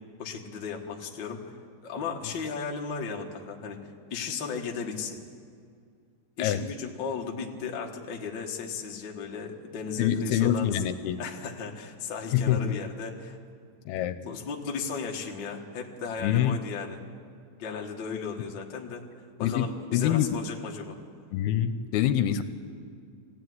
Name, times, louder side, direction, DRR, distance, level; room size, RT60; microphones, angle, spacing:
voice 1, 0.2-3.8 4.1-5.2 6.4-10.8 11.2-13.4 14.2-17.0 17.6-19.1 19.4-21.0, left 5 dB, 45° left, 0 dB, 1.4 m, -35 dB
voice 2, 10.0-11.2 12.3-12.8 13.9-14.2 16.2-16.6 19.4-20.3 21.3-22.4, left 10 dB, 80° left, 11 dB, 2.6 m, -25 dB
21.5 x 16.0 x 9.5 m, 2.2 s
omnidirectional pair, 4.5 m